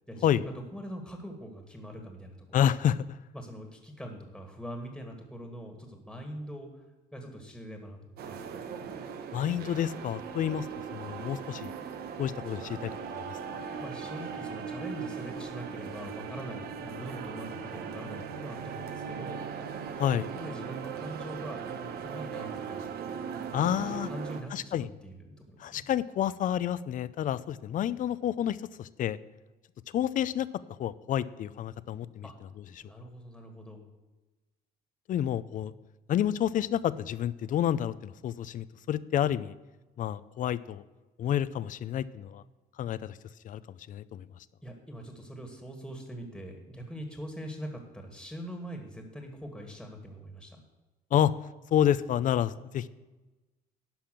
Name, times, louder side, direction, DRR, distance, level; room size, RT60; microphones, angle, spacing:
voice 1, 0.1-2.6 3.3-6.8 7.1-8.7 13.8-19.4 20.1-22.9 23.9-25.8 32.2-32.3 32.8-33.9 44.6-50.6, equal, ahead, 3 dB, 1.8 m, -43 dB
voice 2, 2.5-3.2 9.3-10.7 10.9-11.7 12.2-13.6 20.0-20.3 23.5-24.1 24.5-24.9 25.6-29.2 29.9-30.5 30.8-32.3 35.1-35.7 36.1-39.5 40.0-40.8 41.2-42.4 42.8-43.2 43.4-43.6 43.9-44.3 51.1-51.3 51.7-52.9, left 10 dB, 50° left, 17 dB, 0.5 m, -29 dB
sound 1, 8.2-24.4, right 6 dB, 70° right, 1.1 m, -39 dB
11.5 x 5.6 x 7.6 m, 1.1 s
cardioid pair, 110°, 17 cm